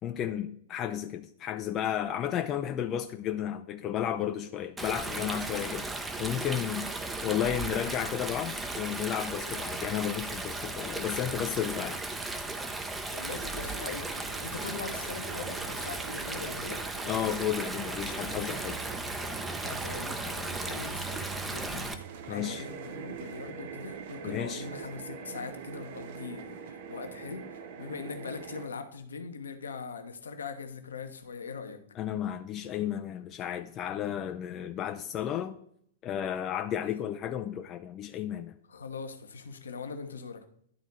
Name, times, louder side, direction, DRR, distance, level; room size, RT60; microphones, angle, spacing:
voice 1, 0.0-6.9 7.2-12.0 17.0-18.8 22.3-22.6 24.2-24.6 32.0-35.6 36.0-38.5, left 10 dB, 30° left, 0.4 m, -33 dB
Stream, 4.8-21.9, right 2 dB, 10° right, 0.7 m, -36 dB
voice 2, 13.1-16.8 19.6-21.9 22.3-31.8 38.7-40.5, left 5 dB, 70° left, 0.9 m, -41 dB
sound 1, 13.3-28.7, right 7 dB, 50° right, 0.8 m, -44 dB
11.0 x 4.1 x 4.0 m
figure-of-eight pair, 100°, 0 cm